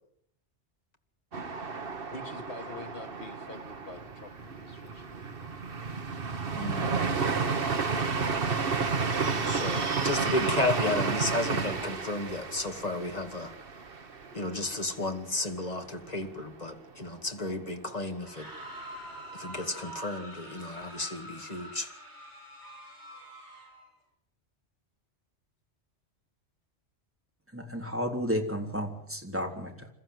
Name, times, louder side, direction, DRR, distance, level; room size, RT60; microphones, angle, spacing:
sound 1, 1.3-15.0 15.4-15.5 15.8-16.4, right 4 dB, 55° right, 1.5 m, -31 dB
voice 1, 2.1-5.5, left 2 dB, 55° left, 4 dB, 2.5 m, -46 dB
voice 2, 6.5-7.0 9.5-13.5 14.3-18.5 19.3-21.9, left 2 dB, 35° left, 4 dB, 2.3 m, -33 dB
scream group long, 18.1-23.9, right 1 dB, 75° right, 8.2 m, -45 dB
voice 3, 27.5-29.9, equal, 10° right, 1 dB, 3.5 m, -32 dB
28.0 x 14.5 x 7.9 m, 0.70 s
omnidirectional pair, 1.2 m